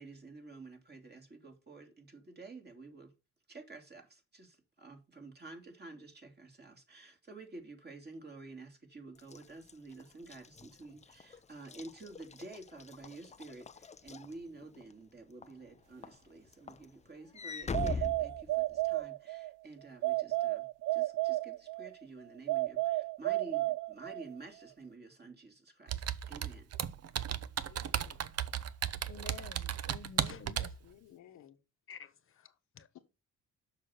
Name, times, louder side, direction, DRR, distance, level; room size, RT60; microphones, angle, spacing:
voice 1, 0.0-3.1 3.5-26.7, right 3 dB, 35° right, 2.7 m, -50 dB
Walk footsteps / Slam, 9.2-14.9 15.4-15.7 16.0-19.0, left 5 dB, 25° left, 0.5 m, -43 dB
sound 1, 17.7-19.5 20.0-21.9 22.5-24.3, right 18 dB, 80° right, 0.5 m, -32 dB
Computer keyboard, 25.9-30.8, right 10 dB, 55° right, 0.8 m, -35 dB
voice 2, 27.6-28.2 30.8-31.6 32.4-32.6 32.9-33.0, left 11 dB, 75° left, 1.3 m, -58 dB
voice 3, 29.1-30.8 31.9-32.1 32.7-32.9, left 6 dB, 45° left, 1.3 m, -49 dB
7.2 x 6.1 x 5.8 m
cardioid pair, 90°, 30 cm